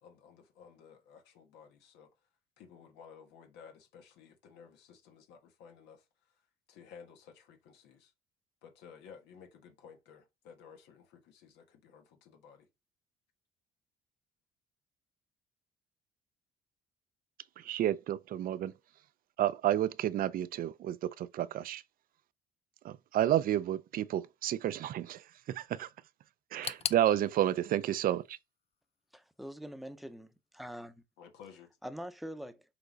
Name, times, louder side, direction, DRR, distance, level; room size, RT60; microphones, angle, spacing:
voice 1, 0.0-2.1 2.6-6.4 6.7-8.1 8.6-12.7 31.2-31.8, left 7 dB, 85° left, 1.6 m, -55 dB
voice 2, 17.6-18.7 19.4-21.8 22.8-25.9 26.5-28.4, right 12 dB, 60° right, 0.5 m, -31 dB
Button click, 26.6-29.5 29.8-30.6 30.9-31.0 31.8-31.9, left 8 dB, 35° left, 0.5 m, -43 dB
voice 3, 29.1-31.0 31.8-32.6, equal, ahead, 0.8 m, -44 dB
6.8 x 3.9 x 4.1 m
cardioid pair, 110°, 17 cm